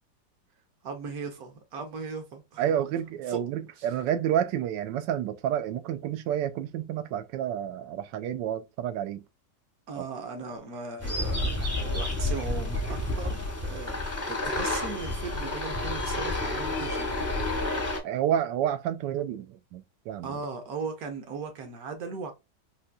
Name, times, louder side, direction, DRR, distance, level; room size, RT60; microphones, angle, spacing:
voice 1, 0.8-2.8 3.3-3.4 3.8-3.9 9.9-17.4 20.2-22.3, right 4 dB, 60° right, 1.3 m, -38 dB
voice 2, 2.6-9.2 18.0-20.3, right 10 dB, 80° right, 1.2 m, -29 dB
sound 1, 11.0-18.0, left 2 dB, 15° left, 0.6 m, -30 dB
4.2 x 2.7 x 2.3 m
omnidirectional pair, 1.9 m